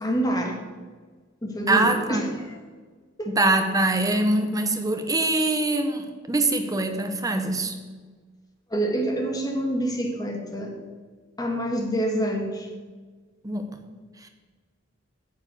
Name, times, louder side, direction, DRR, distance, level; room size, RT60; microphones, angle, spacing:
voice 1, 0.0-0.6 1.4-2.6 3.2-3.3 8.7-10.7 11.4-12.7, right 1 dB, 20° left, 2 dB, 1.6 m, -27 dB
voice 2, 1.7-2.2 3.3-7.8 13.4-13.8, right 2 dB, 20° right, 6 dB, 1.0 m, -23 dB
8.7 x 7.3 x 7.0 m, 1.4 s
head